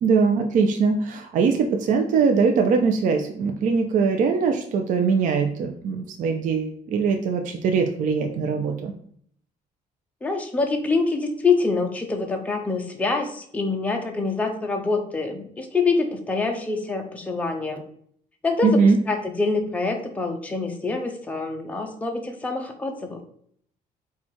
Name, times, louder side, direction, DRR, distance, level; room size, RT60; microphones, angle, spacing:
voice 1, 0.0-8.9 18.6-19.0, right 5 dB, 60° right, 4 dB, 0.5 m, -21 dB
voice 2, 10.2-17.8 18.4-18.8 19.1-23.2, left 3 dB, 10° left, 2 dB, 0.6 m, -25 dB
4.4 x 2.4 x 4.3 m, 0.63 s
cardioid pair, 130°, 15 cm